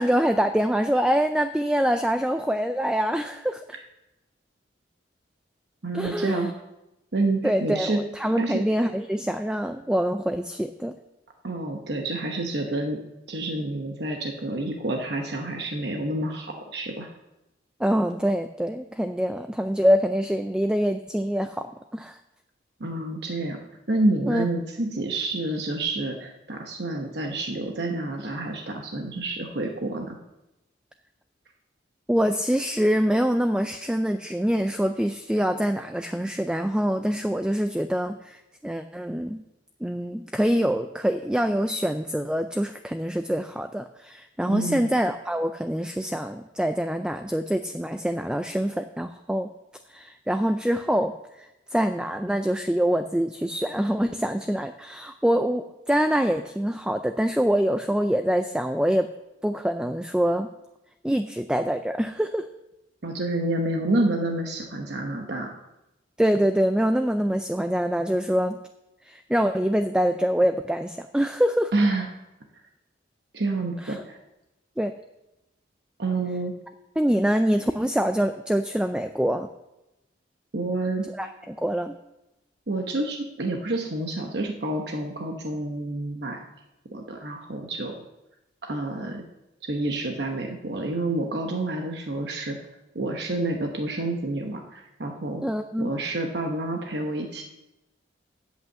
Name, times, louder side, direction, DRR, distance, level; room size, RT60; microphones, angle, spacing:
voice 1, 0.0-3.6 5.9-6.5 7.4-11.0 17.8-22.2 24.3-24.5 32.1-39.4 39.8-49.5 49.9-59.1 59.4-60.5 61.0-62.5 66.2-68.6 69.0-71.7 73.8-74.0 74.8-74.9 77.0-79.5 81.2-81.9 95.4-95.9, equal, 5° right, 8 dB, 0.3 m, -25 dB
voice 2, 5.8-6.5 7.1-8.0 8.4-8.6 11.4-13.0 13.3-17.1 22.8-23.6 23.9-30.2 44.5-44.9 63.0-65.5 71.7-72.1 73.3-74.2 76.0-76.6 80.5-81.1 82.7-86.4 86.9-88.0 88.6-89.2 89.6-92.6 92.9-95.4 95.8-97.4, right 2 dB, 60° right, 3 dB, 1.0 m, -28 dB
8.3 x 8.2 x 7.5 m, 0.95 s
head